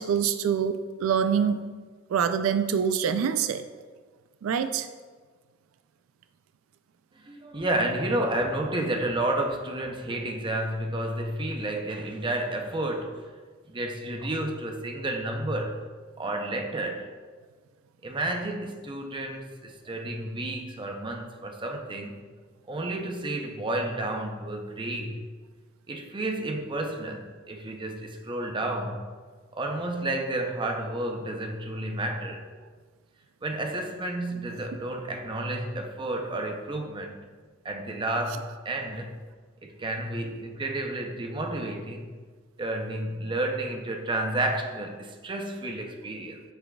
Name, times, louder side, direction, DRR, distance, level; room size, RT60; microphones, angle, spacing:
voice 1, 0.0-1.6 2.1-3.6 4.4-4.9, right 7 dB, 85° right, 10 dB, 0.3 m, -25 dB
voice 2, 7.2-13.2 13.7-15.8 16.2-17.1 18.0-22.2 22.7-25.2 25.9-29.1 29.5-32.4 33.4-37.2 37.6-39.1 39.6-42.1 42.6-46.4, right 1 dB, 25° right, 3 dB, 0.6 m, -31 dB
8.0 x 6.1 x 2.3 m, 1.5 s
head